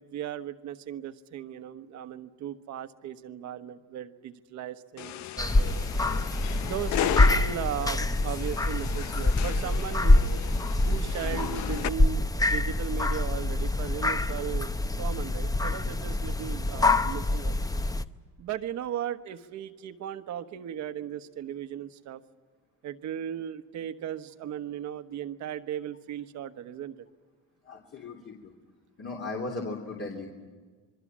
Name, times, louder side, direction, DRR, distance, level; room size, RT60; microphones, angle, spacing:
voice 1, 0.0-5.8 6.6-10.4 10.9-14.7 15.0-17.6 18.4-22.2 22.8-27.1, right 10 dB, 70° right, 9 dB, 1.2 m, -37 dB
sound 1, 5.0-11.9, left 13 dB, 70° left, 0.7 m, -36 dB
sound 2, 5.4-18.1, left 2 dB, 10° left, 0.7 m, -25 dB
voice 2, 27.6-28.5 29.0-30.3, left 3 dB, 50° left, 0 dB, 3.3 m, -37 dB
27.0 x 22.5 x 7.4 m, 1.5 s
cardioid pair, 95°, 29 cm